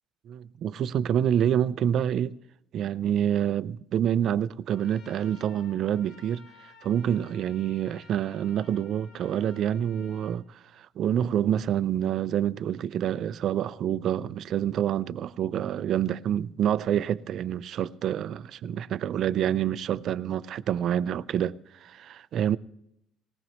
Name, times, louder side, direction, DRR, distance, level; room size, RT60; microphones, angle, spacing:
voice 1, 0.3-2.4 2.7-6.4 6.8-22.6, right 10 dB, 50° right, 0.5 m, -27 dB
Trumpet, 4.7-10.4, left 5 dB, 80° left, 2.4 m, -54 dB
19.5 x 18.5 x 3.1 m
cardioid pair, 150°, 0 cm